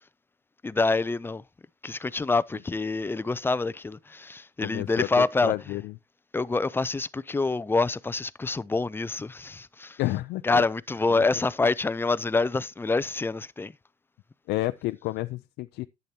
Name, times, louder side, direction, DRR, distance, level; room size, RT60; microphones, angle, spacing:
voice 1, 0.6-1.4 1.8-5.5 6.3-10.0 10.4-13.7, left 3 dB, 15° left, 0.4 m, -26 dB
voice 2, 4.6-5.9 10.0-10.6 14.5-15.9, left 17 dB, 85° left, 0.5 m, -30 dB
10.5 x 8.2 x 2.8 m
cardioid pair, 110°, 17 cm